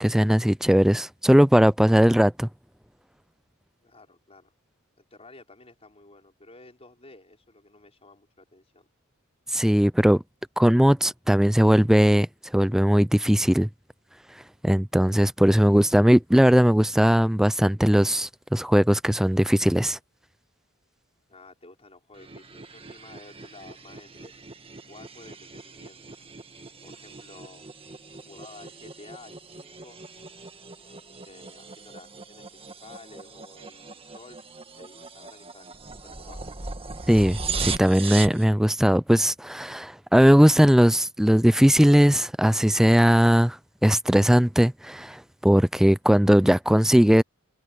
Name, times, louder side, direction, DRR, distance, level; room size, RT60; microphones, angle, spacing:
voice 1, 0.0-2.5 9.5-10.2 10.6-12.3 12.5-13.7 14.6-20.0 37.1-47.2, equal, ahead, 0.3 m, -19 dB
voice 2, 3.8-4.5 5.0-8.9 21.3-24.3 24.9-26.1 26.8-27.7 28.3-30.0 31.1-34.4 34.7-36.5, left 3 dB, 30° left, 5.3 m, -51 dB
sound 1, 22.1-38.4, right 4 dB, 25° right, 1.7 m, -38 dB
head